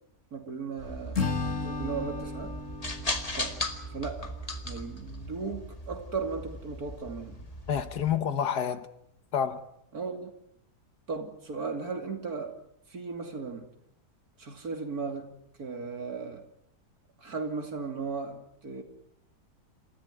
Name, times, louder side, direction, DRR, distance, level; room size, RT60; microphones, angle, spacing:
voice 1, 0.3-2.5 3.3-3.6 3.9-4.4 4.6-7.4 9.9-10.3 11.1-12.6 12.9-13.7 14.4-16.5 17.2-18.8, right 4 dB, 60° right, 3.2 m, -36 dB
Shotgun rack and shell drop, 0.8-8.2, left 1 dB, 20° left, 2.0 m, -38 dB
Acoustic guitar / Strum, 1.1-4.4, left 4 dB, 50° left, 2.5 m, -35 dB
voice 2, 7.7-8.9 9.3-9.6, left 8 dB, 75° left, 1.8 m, -28 dB
28.0 x 15.0 x 9.4 m
omnidirectional pair, 1.8 m